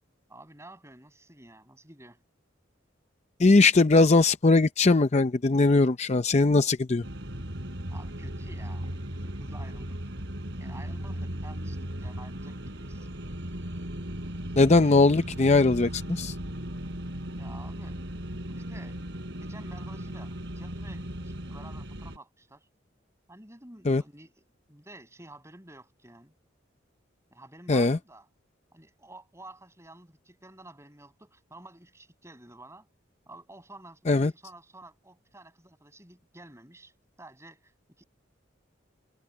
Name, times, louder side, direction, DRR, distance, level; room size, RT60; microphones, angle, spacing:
voice 1, 0.3-2.2 7.9-10.0 10.6-13.1 17.3-18.0 18.5-22.7 23.3-26.3 27.3-28.3 28.7-32.9 33.3-37.7 38.0-38.1, right 2 dB, 15° right, 7.0 m, -50 dB
voice 2, 3.4-7.0 14.6-16.3 23.9-24.0 27.7-28.0 34.1-34.3, left 3 dB, 35° left, 0.6 m, -20 dB
sound 1, 7.0-22.2, equal, 65° right, 4.3 m, -37 dB
head